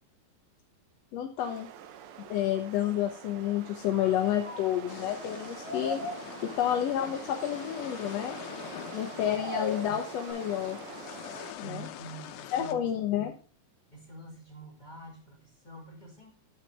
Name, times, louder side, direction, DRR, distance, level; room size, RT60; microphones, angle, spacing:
voice 1, 1.1-1.7 2.3-6.0 6.4-8.4 8.9-10.8 11.6-11.9 12.5-13.3, left 11 dB, 70° left, 3 dB, 1.8 m, -30 dB
sound 1, 1.4-11.5, right 9 dB, 85° right, 1.2 m, -45 dB
sound 2, 3.9-4.7 5.2-5.4 5.6-6.4 6.9-9.0 9.3-10.3, left 2 dB, 25° right, 5.2 m, -39 dB
sound 3, 4.9-12.7, left 12 dB, 85° left, 2.2 m, -44 dB
voice 2, 11.6-13.4 13.9-16.3, right 3 dB, 15° left, -1 dB, 2.4 m, -47 dB
10.0 x 7.4 x 3.3 m, 0.39 s
omnidirectional pair, 3.5 m